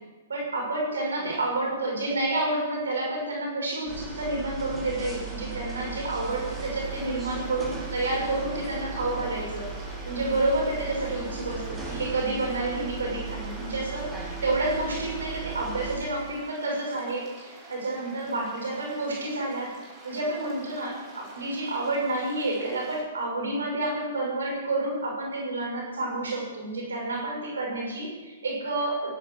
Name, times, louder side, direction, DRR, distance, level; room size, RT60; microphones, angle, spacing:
voice 1, 0.3-19.7 20.0-29.1, right 2 dB, 85° right, -1 dB, 6.7 m, -29 dB
sound 1, 3.9-16.0, right 5 dB, 15° right, 5.8 m, -37 dB
sound 2, 6.2-23.0, right 3 dB, 35° right, 6.2 m, -49 dB
17.5 x 16.5 x 4.9 m, 1.3 s
hypercardioid pair, 130°, 0 cm